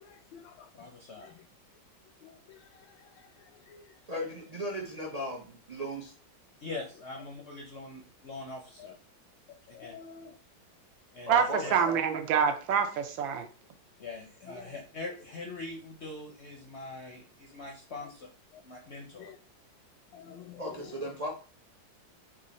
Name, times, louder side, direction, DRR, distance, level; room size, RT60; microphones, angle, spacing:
voice 1, 0.0-0.7 1.2-1.4 2.2-4.0 8.8-9.0 9.7-10.3 14.4-14.7 18.0-18.1 18.5-18.6 19.2-19.4 20.1-21.0, left 7 dB, 80° left, 1.3 m, -51 dB
voice 2, 0.7-1.3 6.6-8.9 9.7-9.9 11.1-11.7 14.0-18.3 18.6-19.3, left 3 dB, 60° left, 0.7 m, -43 dB
voice 3, 4.1-5.4 5.7-6.1 11.3-12.0 20.6-21.3, equal, 65° right, 0.3 m, -36 dB
voice 4, 11.3-13.5, right 7 dB, 85° right, 1.4 m, -26 dB
4.6 x 2.5 x 4.1 m
omnidirectional pair, 2.0 m